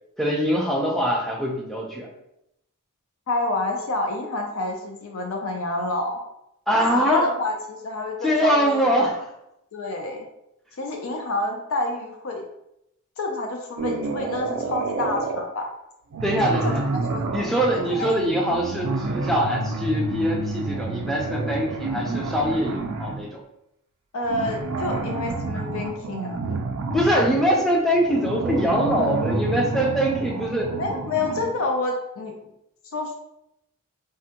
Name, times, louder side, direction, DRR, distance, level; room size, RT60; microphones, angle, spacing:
voice 1, 0.2-2.1 6.7-7.3 8.2-9.3 16.2-16.8 17.3-23.4 26.9-30.8, equal, ahead, -2 dB, 0.4 m, -23 dB
voice 2, 3.3-6.2 6.9-8.8 9.7-10.3 10.8-12.4 13.2-15.7 16.4-17.2 17.7-18.1 24.1-26.5 30.8-32.3 32.9-33.2, left 2 dB, 70° left, 2 dB, 0.4 m, -28 dB
sound 1, 13.8-15.5 16.1-23.3 24.2-31.6, right 3 dB, 90° right, 0.4 m, -29 dB
3.4 x 2.1 x 2.8 m, 0.83 s
head